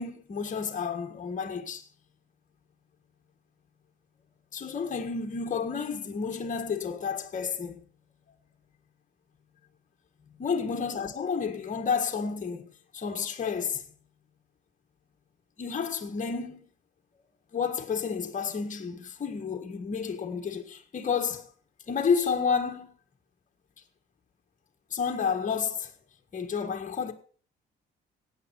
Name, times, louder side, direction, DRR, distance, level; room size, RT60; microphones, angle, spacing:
voice 1, 0.0-1.8 4.5-7.8 10.4-12.6 12.9-13.8 15.6-16.6 17.5-21.5 21.9-22.9 24.9-25.9 26.3-27.1, left 6 dB, 40° left, 1.6 m, -30 dB
16.0 x 9.3 x 4.6 m
cardioid pair, 90°, 20 cm